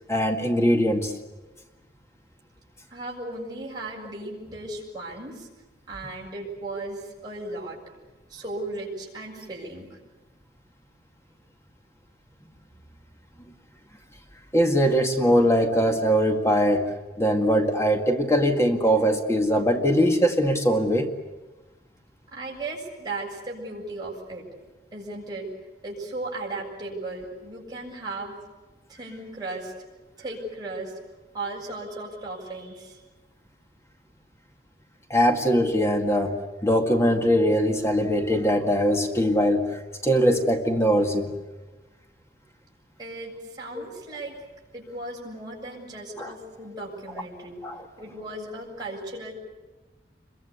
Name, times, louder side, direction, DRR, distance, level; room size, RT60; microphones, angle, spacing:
voice 1, 0.1-1.1 14.5-21.1 35.1-41.3 43.8-43.9 46.2-46.3 47.6-47.8, equal, 15° left, 4 dB, 1.9 m, -22 dB
voice 2, 2.9-5.5 5.9-7.8 8.3-10.0 22.3-24.5 24.9-25.5 25.8-28.4 28.9-29.7 30.2-31.0 31.3-33.0 43.0-44.3 44.7-47.6 48.0-49.3, right 2 dB, 25° right, -3 dB, 7.5 m, -36 dB
27.5 x 23.0 x 8.4 m, 1.2 s
head